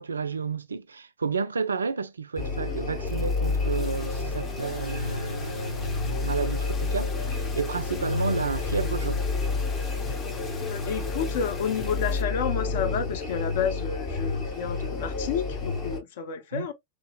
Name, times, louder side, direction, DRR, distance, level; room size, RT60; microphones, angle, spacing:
voice 1, 0.0-9.3 16.5-16.7, right 5 dB, 75° right, 0.3 m, -31 dB
sound 1, 2.4-16.0, left 4 dB, 40° left, 1.6 m, -30 dB
sound 2, 3.1-12.2, left 3 dB, 25° left, 1.0 m, -44 dB
voice 2, 10.6-16.7, left 7 dB, 55° left, 0.6 m, -30 dB
3.6 x 2.7 x 2.3 m
figure-of-eight pair, 90°, 0 cm